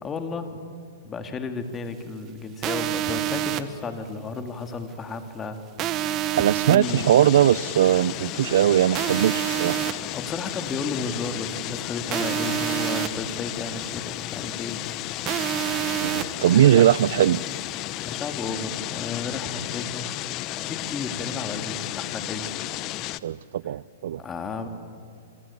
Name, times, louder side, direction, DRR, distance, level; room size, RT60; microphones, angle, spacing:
voice 1, 0.0-0.6 1.0-5.6 6.1-7.1 10.1-14.8 16.5-16.8 18.0-20.1 20.5-22.6 24.2-24.7, left 4 dB, 20° left, 2.3 m, -33 dB
sound 1, 2.6-3.6 5.8-6.8 8.9-9.9 12.1-13.1 15.3-16.2, right 13 dB, 30° right, 1.3 m, -27 dB
voice 2, 6.4-9.8 16.0-17.4 23.2-24.2, right 11 dB, 70° right, 0.6 m, -20 dB
sound 2, 6.8-23.2, left 16 dB, 35° left, 0.8 m, -33 dB
28.0 x 23.5 x 8.5 m
hypercardioid pair, 140°, 0 cm